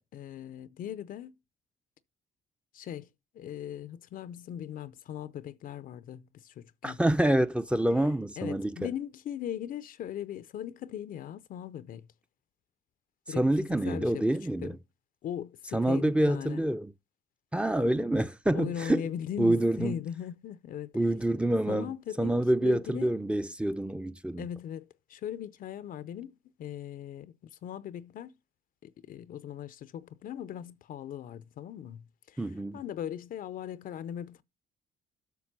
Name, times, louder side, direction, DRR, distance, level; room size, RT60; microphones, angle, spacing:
voice 1, 0.1-1.3 2.7-3.1 3.3-7.0 8.4-12.1 13.3-13.5 13.8-14.3 14.6-14.8 15.2-16.6 18.5-20.9 21.7-22.3 22.6-23.1 24.4-28.3 28.8-32.4 32.7-34.4, left 10 dB, 65° left, 0.5 m, -39 dB
voice 2, 6.8-8.9 13.3-14.8 15.7-16.9 17.5-19.0 19.4-20.0 20.9-21.9 22.2-24.5 32.4-32.8, right 1 dB, 5° right, 0.6 m, -27 dB
8.2 x 5.8 x 6.0 m
supercardioid pair, 60°, 16 cm